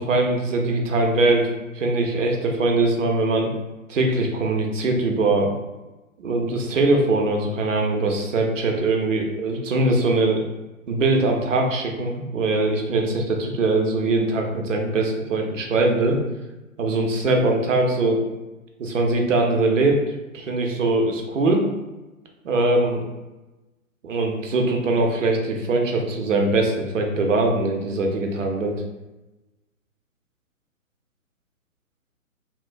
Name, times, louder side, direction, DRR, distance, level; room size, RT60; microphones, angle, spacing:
voice 1, 0.0-1.5 1.7-3.5 3.9-5.5 6.2-10.4 10.9-16.2 16.8-18.2 18.8-20.0 20.3-21.7 22.4-23.1 24.0-28.8, right 2 dB, 60° right, 2 dB, 0.6 m, -21 dB
3.0 x 2.1 x 2.5 m, 1.1 s
figure-of-eight pair, 130°, 42 cm